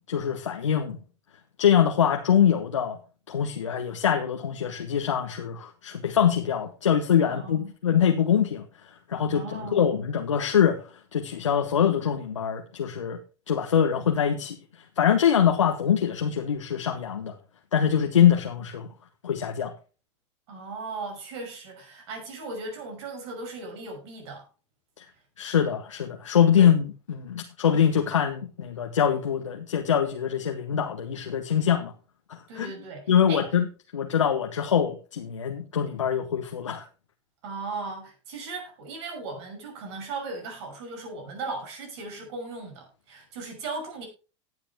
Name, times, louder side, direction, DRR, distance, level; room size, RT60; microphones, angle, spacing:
voice 1, 0.1-1.0 1.6-3.0 3.3-8.6 9.1-10.8 11.1-13.2 13.5-14.6 15.0-17.3 17.7-18.9 19.2-19.7 25.0-25.1 25.4-31.9 32.3-32.7 33.1-33.6 33.9-36.8, left 8 dB, 85° left, 1.1 m, -24 dB
voice 2, 7.3-7.7 9.2-9.9 20.5-24.5 26.5-26.7 32.5-33.5 37.4-44.1, right 3 dB, 65° right, 6.0 m, -37 dB
18.5 x 8.0 x 2.2 m
hypercardioid pair, 85°, 15 cm